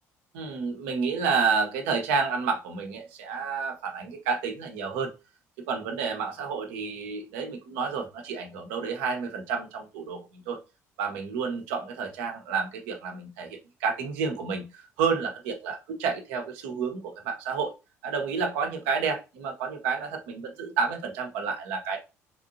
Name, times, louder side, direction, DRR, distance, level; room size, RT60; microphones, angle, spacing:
voice 1, 0.3-5.1 5.7-10.6 11.0-17.7 18.0-22.0, right 5 dB, 70° right, 4 dB, 1.1 m, -30 dB
4.7 x 3.6 x 2.7 m, 0.27 s
figure-of-eight pair, 55°, 8 cm